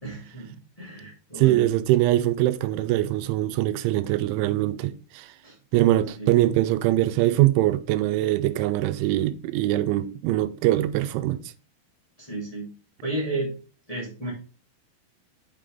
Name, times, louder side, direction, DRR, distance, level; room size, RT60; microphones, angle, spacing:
voice 1, 0.0-1.6 5.4-5.5 6.2-6.3 12.2-12.7 13.0-13.5 13.9-14.3, right 2 dB, 40° left, 0.5 m, -32 dB
voice 2, 1.4-5.3 5.7-11.4, right 15 dB, 85° right, 3.0 m, -22 dB
8.4 x 5.1 x 3.7 m
omnidirectional pair, 5.4 m